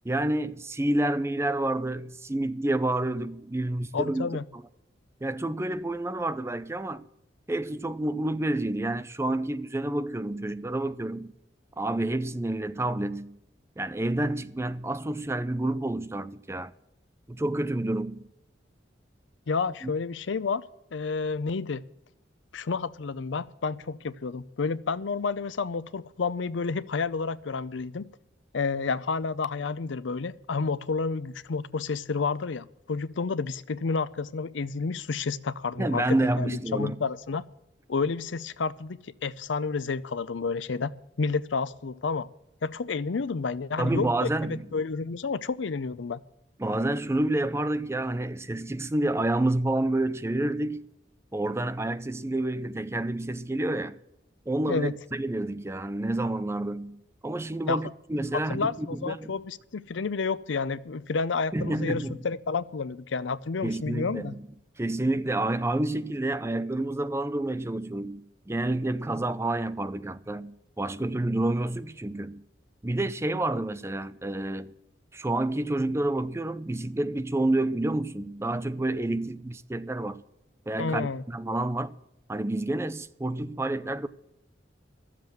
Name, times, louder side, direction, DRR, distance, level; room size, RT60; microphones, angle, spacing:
voice 1, 0.0-4.3 5.2-7.1 7.5-11.3 11.8-13.4 13.8-16.7 17.3-18.3 19.8-19.9 35.8-37.0 43.8-44.6 46.6-50.8 51.3-54.0 54.5-59.3 61.5-62.2 63.6-64.4 64.8-72.4 72.8-74.7 75.1-80.2 80.7-81.9 82.3-84.1, right 1 dB, 15° right, 0.4 m, -29 dB
voice 2, 3.9-4.4 19.5-20.6 20.9-21.8 22.5-28.1 28.5-37.4 37.9-40.9 41.2-42.3 42.6-46.2 54.7-54.9 57.7-57.8 58.3-64.3 80.8-81.2, left 4 dB, 80° left, 0.6 m, -30 dB
12.5 x 7.5 x 9.1 m
head